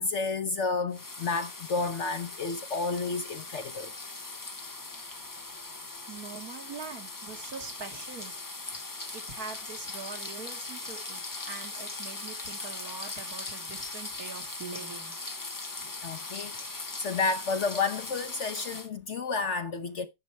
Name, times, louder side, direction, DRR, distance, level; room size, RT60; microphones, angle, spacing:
voice 1, 0.0-3.9 16.0-20.1, left 4 dB, 55° left, 0.9 m, -31 dB
sound 1, 0.9-18.9, left 3 dB, 25° left, 0.4 m, -40 dB
voice 2, 6.1-8.3 9.1-15.2, right 5 dB, 65° right, 2.3 m, -43 dB
10.5 x 6.6 x 4.4 m
omnidirectional pair, 1.7 m